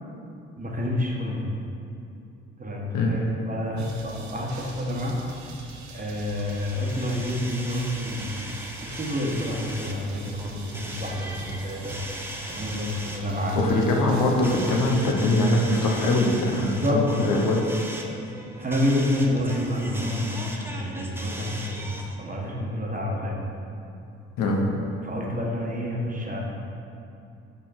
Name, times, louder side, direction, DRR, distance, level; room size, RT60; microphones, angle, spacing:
voice 1, 0.6-1.5 2.6-5.1 5.9-8.5 8.8-12.0 12.5-13.6 16.6-17.0 18.6-21.9 22.2-23.4 25.0-26.4, left 1 dB, 25° right, -2 dB, 1.3 m, -28 dB
sound 1, 3.8-15.7, right 3 dB, 55° right, 1.0 m, -45 dB
sound 2, 6.2-22.2, right 1 dB, 5° right, 0.7 m, -38 dB
voice 2, 13.5-17.6 24.4-24.7, left 2 dB, 65° left, 0 dB, 0.9 m, -22 dB
5.3 x 4.2 x 4.2 m, 2.6 s
hypercardioid pair, 50°, 34 cm